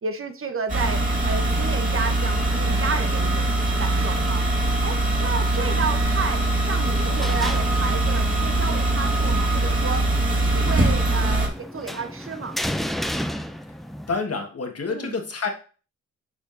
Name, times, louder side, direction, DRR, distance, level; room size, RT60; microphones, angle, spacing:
voice 1, 0.0-3.5 3.8-4.5 4.8-10.1 10.5-12.6 14.9-15.2, right 4 dB, 45° right, 7 dB, 1.0 m, -31 dB
sound 1, 0.7-11.5, right 2 dB, 25° right, 2.3 m, -22 dB
sound 2, 6.8-14.2, equal, ahead, 0.5 m, -33 dB
voice 2, 14.1-15.5, left 4 dB, 50° left, 4 dB, 1.5 m, -28 dB
8.9 x 5.0 x 2.6 m, 0.37 s
cardioid pair, 60°, 30 cm